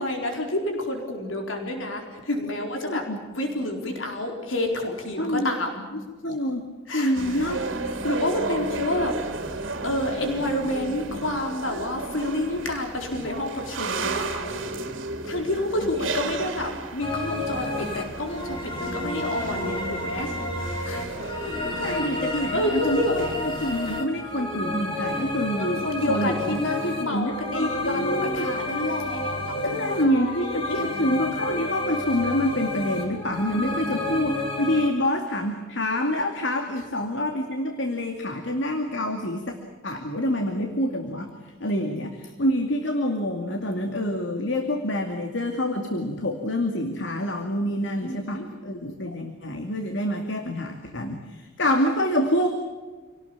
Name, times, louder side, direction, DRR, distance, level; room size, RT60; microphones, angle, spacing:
voice 1, 0.0-6.0 6.9-7.6 8.0-9.2 9.8-14.7 15.2-20.3 20.8-21.2 21.8-22.1 22.5-23.2 25.6-30.8 48.0-48.5, left 1 dB, 85° left, 3 dB, 4.4 m, -29 dB
voice 2, 2.5-3.2 5.2-5.5 6.2-6.7 6.9-7.6 21.2-23.2 23.6-28.5 29.6-39.6 39.8-52.5, left 1 dB, 65° left, 4 dB, 2.4 m, -27 dB
sound 1, 7.1-24.0, right 3 dB, 80° right, 2.4 m, -34 dB
sound 2, 17.0-34.9, left 1 dB, 25° left, 4.2 m, -30 dB
28.5 x 18.5 x 8.8 m, 1.3 s
head